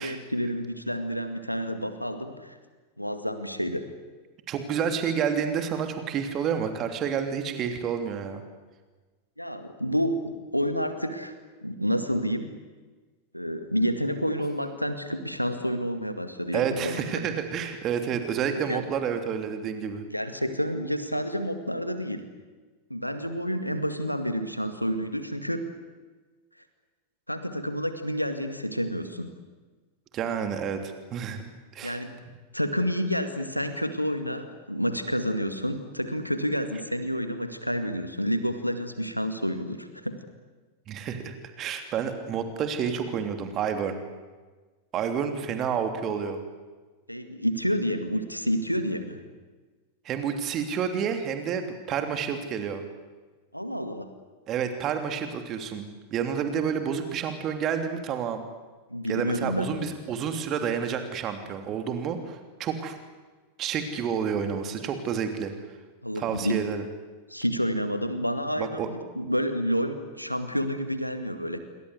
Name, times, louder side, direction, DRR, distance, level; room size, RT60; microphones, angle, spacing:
voice 1, 0.0-2.6 3.0-3.9 9.4-11.3 11.6-12.5 13.3-17.1 18.7-18.8 20.1-22.3 22.9-25.6 27.3-29.3 31.8-32.2 32.5-40.2 47.1-49.2 53.5-54.1 58.9-59.9 66.0-66.6 67.3-71.6, equal, 90° left, 9 dB, 2.1 m, -29 dB
voice 2, 4.5-8.4 16.5-20.0 30.1-31.5 31.7-32.0 40.9-44.0 44.9-46.4 50.0-52.8 54.5-58.4 59.1-63.0 63.6-65.5 66.1-66.8 68.6-68.9, right 7 dB, 30° right, 7 dB, 3.0 m, -29 dB
27.5 x 24.0 x 8.2 m, 1.3 s
figure-of-eight pair, 90°, 0 cm